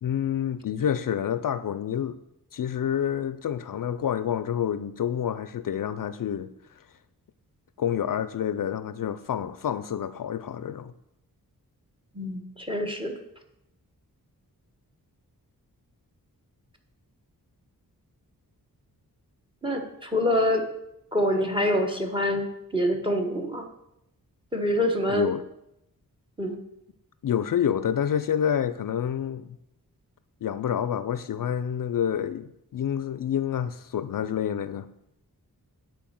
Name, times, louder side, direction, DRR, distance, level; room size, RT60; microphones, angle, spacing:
voice 1, 0.0-2.2 2.5-6.5 7.8-10.9 25.1-25.4 27.2-29.6 30.4-34.9, left 9 dB, 60° left, 0.5 m, -28 dB
voice 2, 12.1-13.1 19.6-20.7 21.1-23.7 24.5-25.3 26.4-26.6, left 1 dB, 15° right, 1.4 m, -26 dB
9.2 x 4.5 x 7.5 m
wide cardioid pair, 95°, 37 cm